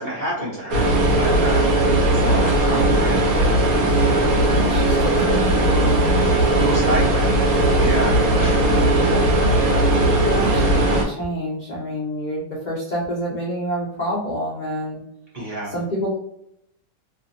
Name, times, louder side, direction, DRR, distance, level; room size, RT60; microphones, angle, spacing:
voice 1, 0.0-3.9 4.6-5.0 6.5-7.3 7.6-9.2 9.5-9.9 15.3-15.7, right 1 dB, 45° right, -7 dB, 0.7 m, -30 dB
sound 1, 0.7-11.1, right 1 dB, 65° right, 1.2 m, -18 dB
voice 2, 3.9-6.0 8.3-9.3 10.2-15.0 15.7-16.2, equal, 80° left, -5 dB, 0.4 m, -28 dB
2.7 x 2.5 x 2.5 m, 0.75 s
omnidirectional pair, 1.8 m